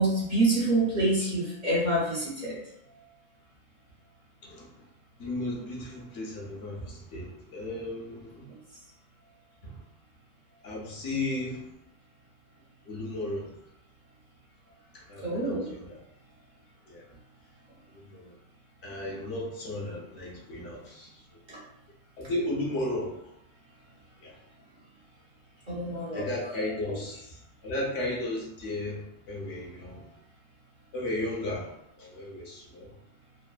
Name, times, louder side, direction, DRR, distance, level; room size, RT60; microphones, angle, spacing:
voice 1, 0.0-2.6 15.2-15.7 21.5-21.6 25.7-26.2 26.9-27.0, right 2 dB, 45° right, -7 dB, 0.8 m, -26 dB
voice 2, 5.2-8.4 9.6-9.7 10.6-11.6 12.9-13.5 15.1-15.9 16.9-17.0 18.1-18.3 18.8-21.1 22.2-23.2 24.2-24.3 26.1-27.3 27.6-29.0 29.3-30.0 30.9-31.7 32.0-32.9, left 1 dB, 70° left, -2 dB, 1.0 m, -34 dB
3.0 x 2.0 x 2.3 m, 0.77 s
omnidirectional pair, 1.3 m